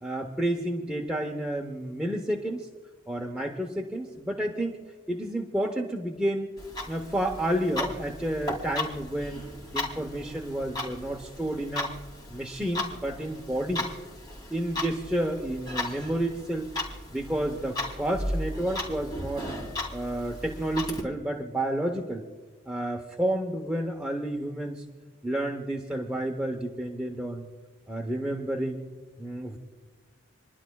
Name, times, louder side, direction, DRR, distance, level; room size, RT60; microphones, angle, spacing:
voice 1, 0.0-2.7 3.1-4.8 5.1-6.5 6.9-9.4 9.7-11.9 12.3-13.9 14.5-16.7 17.1-19.5 19.9-22.2 22.7-24.8 25.2-27.5 27.9-28.8 29.2-29.6, right 1 dB, 5° right, 0 dB, 0.8 m, -30 dB
Clock, 6.6-21.0, left 1 dB, 20° left, 2.7 m, -36 dB
28.5 x 11.5 x 2.3 m, 1.4 s
head